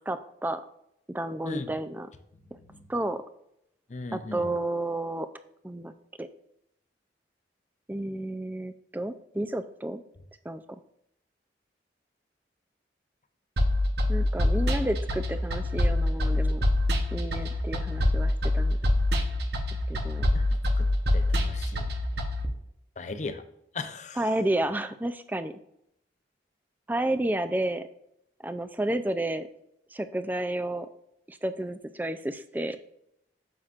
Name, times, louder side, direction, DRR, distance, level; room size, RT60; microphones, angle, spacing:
voice 1, 0.1-0.6 1.1-2.1 2.9-3.2 4.1-5.3 5.6-6.3 7.9-10.0 10.4-10.8 14.1-16.6 17.1-18.8 19.9-20.3 24.2-25.5 26.9-27.9 28.4-29.5 29.9-30.9 31.3-32.8, right 1 dB, 10° right, 10 dB, 0.4 m, -31 dB
voice 2, 3.9-4.4 20.3-20.4 20.8-22.0 23.0-23.4 23.7-24.2, left 3 dB, 40° left, 9 dB, 0.7 m, -38 dB
sound 1, 13.6-22.4, left 1 dB, 65° right, 0.9 m, -25 dB
9.4 x 7.3 x 2.5 m, 0.78 s
head